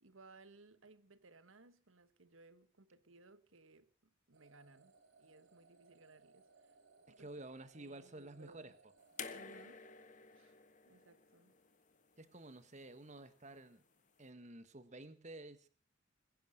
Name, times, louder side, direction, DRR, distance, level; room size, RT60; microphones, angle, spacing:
voice 1, 0.0-6.7 7.1-7.3 7.7-8.7 9.3-9.8 10.3-10.6 10.9-11.5, right 3 dB, 85° right, 1.4 m, -62 dB
sound 1, 4.3-10.5, right 3 dB, 70° right, 2.8 m, -67 dB
voice 2, 7.1-8.7 12.2-13.8 14.2-15.7, right 2 dB, 35° right, 1.5 m, -52 dB
sound 2, 9.2-12.3 13.5-13.6, left 6 dB, 40° left, 1.4 m, -51 dB
21.5 x 10.5 x 6.6 m
head